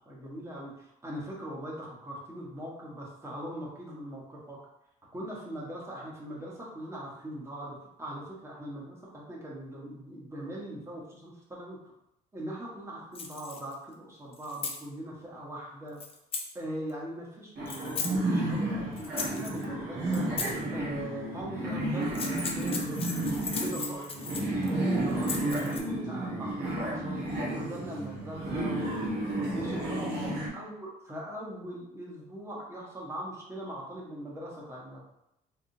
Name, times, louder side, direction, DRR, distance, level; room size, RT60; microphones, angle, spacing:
voice 1, 0.0-4.6 5.1-11.8 12.3-16.0 16.5-20.3 20.7-23.0 23.6-27.2 27.6-29.0 29.5-35.0, right 1 dB, 15° right, -3 dB, 1.2 m, -41 dB
sound 1, 13.2-13.7 14.3-14.8 16.0-16.5 17.7-18.1 19.0-19.6 20.1-20.6 22.0-24.7 25.1-25.8, left 4 dB, 35° left, 0.6 m, -37 dB
sound 2, 17.6-30.5, right 1 dB, 75° right, 1.4 m, -32 dB
3.6 x 3.3 x 2.7 m, 0.83 s
cardioid pair, 110°, 17 cm